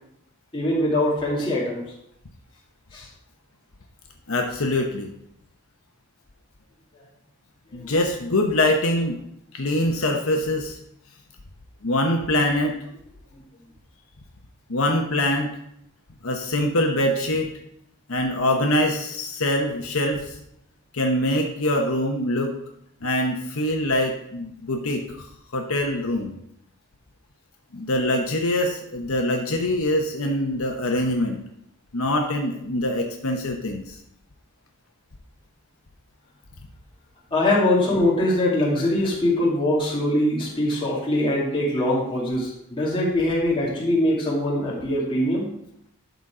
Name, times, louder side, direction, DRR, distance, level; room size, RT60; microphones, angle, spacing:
voice 1, 0.5-1.9 2.9-3.1 7.7-7.9 37.3-45.5, left 1 dB, 25° left, -6 dB, 2.4 m, -22 dB
voice 2, 4.3-5.1 7.7-9.2 9.5-10.8 11.8-12.7 14.7-15.5 16.2-17.5 18.1-20.4 20.9-22.5 23.0-25.3 25.5-26.3 27.7-31.4 31.9-34.0, left 1 dB, 75° left, 2 dB, 1.0 m, -24 dB
11.5 x 4.1 x 4.9 m, 0.76 s
head